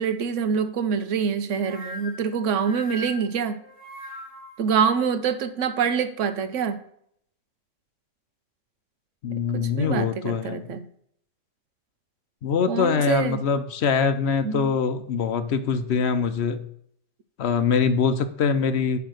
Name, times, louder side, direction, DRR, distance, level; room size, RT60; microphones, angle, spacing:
voice 1, 0.0-3.6 4.6-6.8 9.3-10.8 12.7-13.4 14.4-14.7, right 6 dB, 80° right, 11 dB, 1.1 m, -25 dB
sound 1, 1.6-4.7, left 2 dB, 65° right, 1.9 m, -40 dB
voice 2, 9.2-10.7 12.4-16.7 17.4-19.0, left 6 dB, 65° left, 10 dB, 0.9 m, -23 dB
10.5 x 3.4 x 6.3 m, 0.70 s
omnidirectional pair, 1.3 m